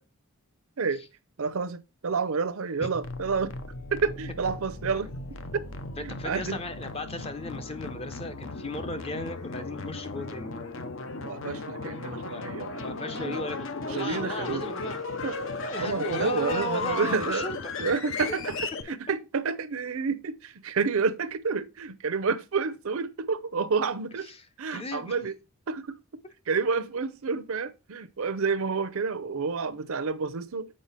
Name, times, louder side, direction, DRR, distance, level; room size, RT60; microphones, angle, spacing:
voice 1, 1.4-3.5 3.9-5.1 5.5-5.6 6.0-6.6 11.2-13.4 13.9-14.7 15.2-17.5 17.8-24.3 24.6-25.4 25.7-30.7, right 5 dB, 70° right, 0.6 m, -29 dB
sound 1, 2.9-18.8, left 3 dB, 60° left, 0.7 m, -36 dB
voice 2, 6.1-10.5 12.2-12.5 12.8-15.0 15.7-17.6 24.2-24.4 24.7-25.2, left 2 dB, 25° left, 0.7 m, -36 dB
7.5 x 4.8 x 4.0 m
head